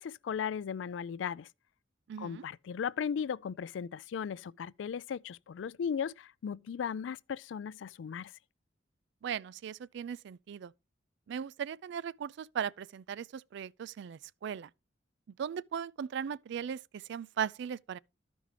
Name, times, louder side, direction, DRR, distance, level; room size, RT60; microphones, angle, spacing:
voice 1, 0.0-1.5 2.2-8.3, left 7 dB, 70° left, 0.3 m, -36 dB
voice 2, 2.1-2.4 9.2-10.7 11.3-14.7 15.4-18.0, right 8 dB, 65° right, 0.3 m, -38 dB
13.5 x 5.1 x 3.3 m
head